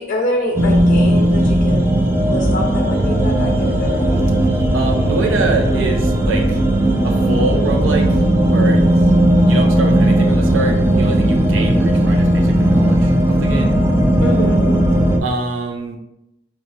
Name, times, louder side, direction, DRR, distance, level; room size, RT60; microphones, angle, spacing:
voice 1, 0.0-1.9 2.2-4.3 14.2-14.6, left 1 dB, 40° left, 0 dB, 0.5 m, -25 dB
sound 1, 0.6-15.2, right 1 dB, 10° right, 0.4 m, -15 dB
voice 2, 4.7-6.6 7.0-8.2 8.5-8.8 9.5-13.8 15.2-16.0, right 2 dB, 75° right, 2 dB, 0.6 m, -24 dB
5.8 x 2.4 x 2.7 m, 0.89 s
head